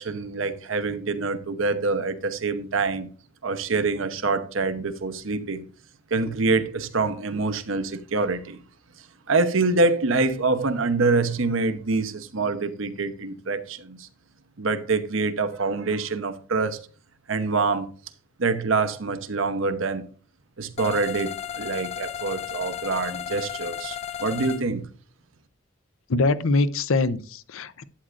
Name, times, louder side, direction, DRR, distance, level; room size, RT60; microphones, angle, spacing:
voice 1, 0.0-3.1 3.4-5.6 6.1-8.6 9.3-14.1 14.6-16.8 17.3-17.9 18.4-20.1 20.6-24.9, right 3 dB, 70° right, 0.9 m, -25 dB
sound 1, 20.8-24.6, left 9 dB, 30° left, 0.3 m, -34 dB
voice 2, 26.1-27.8, left 3 dB, 75° left, 0.6 m, -23 dB
11.5 x 8.7 x 2.5 m
head